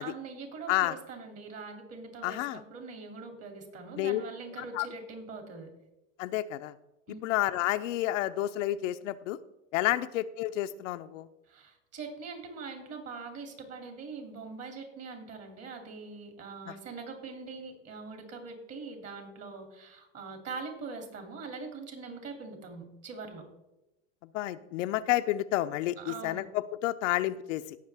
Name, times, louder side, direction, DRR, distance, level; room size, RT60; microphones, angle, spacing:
voice 1, 0.0-5.7 7.1-7.2 11.5-23.4 26.0-26.5, right 4 dB, 40° right, 4 dB, 2.8 m, -43 dB
voice 2, 2.2-2.6 4.0-4.2 4.7-4.9 6.2-6.7 7.2-9.4 9.7-11.3 24.3-27.6, left 15 dB, 75° left, 10 dB, 0.7 m, -30 dB
17.5 x 6.4 x 3.5 m, 0.94 s
hypercardioid pair, 105°, 38 cm